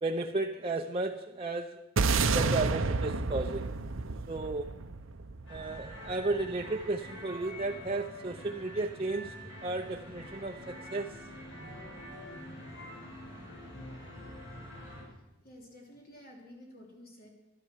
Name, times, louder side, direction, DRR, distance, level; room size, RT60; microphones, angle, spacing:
voice 1, 0.0-1.8 2.3-3.7 4.3-4.7 5.5-9.3 9.6-11.2, right 2 dB, 30° right, 2 dB, 0.7 m, -34 dB
sound 1, 2.0-6.4, right 4 dB, 90° right, 0.8 m, -30 dB
sound 2, 5.5-15.0, equal, 70° left, 7.6 m, -45 dB
voice 2, 15.1-17.3, left 1 dB, 50° left, 0 dB, 3.0 m, -52 dB
15.0 x 12.5 x 7.4 m, 1.0 s
head